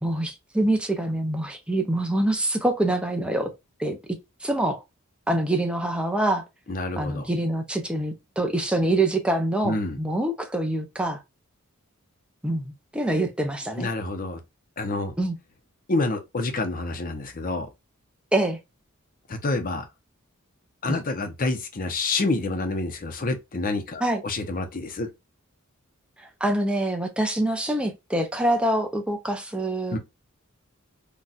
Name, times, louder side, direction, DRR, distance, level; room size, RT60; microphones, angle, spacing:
voice 1, 0.0-3.5 3.8-4.8 5.3-6.4 7.0-11.2 12.4-13.9 15.2-15.4 18.3-18.6 24.0-24.2 26.2-30.0, right 1 dB, 5° right, 0.5 m, -25 dB
voice 2, 6.7-7.3 9.6-10.0 13.8-14.4 14.8-15.1 15.9-17.7 19.3-19.9 20.8-25.1 29.9-30.0, left 2 dB, 40° left, 0.6 m, -28 dB
4.0 x 2.3 x 2.3 m
head